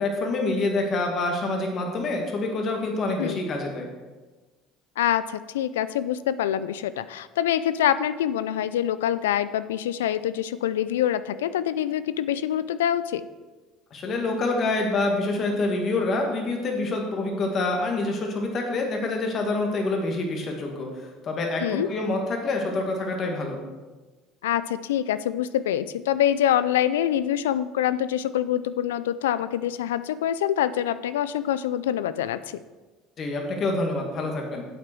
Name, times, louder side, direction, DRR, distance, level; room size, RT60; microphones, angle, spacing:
voice 1, 0.0-3.9 13.9-23.6 33.2-34.6, left 2 dB, 45° left, 2 dB, 2.1 m, -27 dB
voice 2, 5.0-13.3 21.6-21.9 24.4-32.6, left 11 dB, 85° left, 15 dB, 0.4 m, -25 dB
8.8 x 7.7 x 4.6 m, 1.3 s
hypercardioid pair, 70°, 0 cm